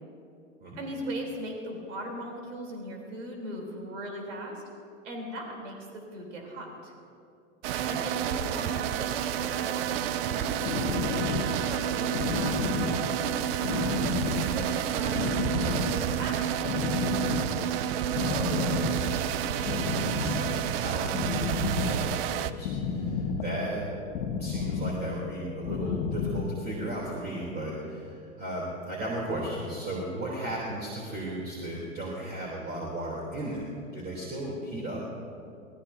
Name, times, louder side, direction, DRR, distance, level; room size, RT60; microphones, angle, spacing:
voice 1, 0.8-4.6 5.0-6.9 7.9-10.5 11.1-13.3 13.5-13.8 14.5-17.2 30.3-30.4, right 1 dB, 75° right, 0 dB, 4.0 m, -39 dB
sound 1, 7.6-22.5, right 11 dB, 50° right, 0.7 m, -30 dB
sound 2, 10.3-26.9, left 5 dB, 60° left, 1.6 m, -32 dB
voice 2, 18.2-23.8 24.4-35.0, right 1 dB, 25° right, -4 dB, 3.7 m, -36 dB
24.0 x 19.0 x 2.9 m, 2.5 s
hypercardioid pair, 110°, 37 cm